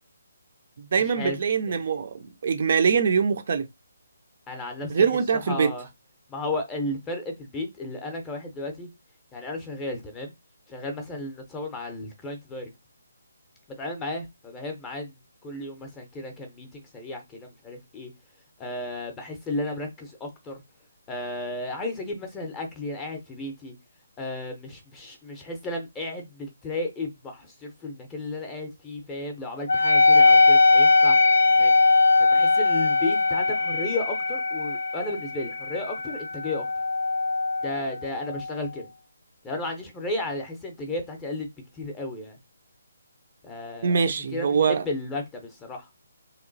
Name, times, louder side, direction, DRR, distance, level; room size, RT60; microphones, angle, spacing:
voice 1, 0.8-3.7 4.9-5.7 43.8-44.9, right 6 dB, 40° right, 0.4 m, -23 dB
voice 2, 4.5-5.1 5.3-5.9 6.3-8.9 9.3-10.3 10.7-12.7 13.8-15.2 15.4-18.1 18.6-20.6 21.1-23.7 24.2-31.2 31.6-31.7 32.2-36.7 37.6-38.9 39.4-41.5 41.7-42.4 43.4-45.9, left 2 dB, 10° left, 0.6 m, -34 dB
Wind instrument woodwind instrument, 29.7-38.6, left 3 dB, 80° left, 0.4 m, -21 dB
3.1 x 2.9 x 3.9 m
hypercardioid pair, 175°, 0 cm